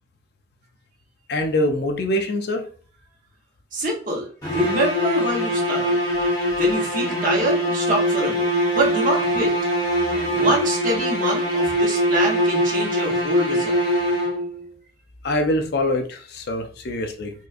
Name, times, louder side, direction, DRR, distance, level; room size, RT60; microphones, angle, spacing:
voice 1, 1.3-2.7 15.2-17.3, left 1 dB, 60° left, 5 dB, 0.5 m, -24 dB
voice 2, 3.7-6.0 6.6-8.5 8.7-9.5 10.3-13.8, right 1 dB, 45° right, -1 dB, 1.0 m, -25 dB
sound 1, 4.4-14.6, equal, 20° left, 1.4 m, -22 dB
4.2 x 2.4 x 2.5 m, 0.42 s
head